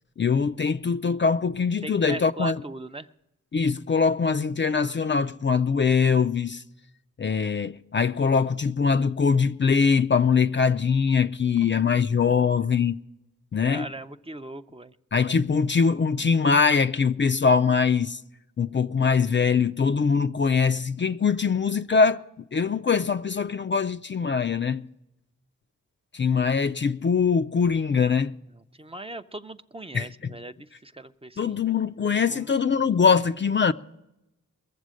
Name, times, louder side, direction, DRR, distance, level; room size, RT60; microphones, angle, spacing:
voice 1, 0.2-2.6 3.5-6.6 7.2-13.0 13.5-13.9 15.1-18.2 18.6-22.2 22.5-24.9 26.1-28.3 29.9-30.3 31.4-33.7, left 5 dB, 35° left, 0.4 m, -22 dB
voice 2, 1.8-3.1 11.6-12.0 13.6-15.0 28.8-31.6 32.3-32.5, right 2 dB, 20° right, 0.5 m, -39 dB
21.5 x 7.3 x 6.3 m
cardioid pair, 55°, 32 cm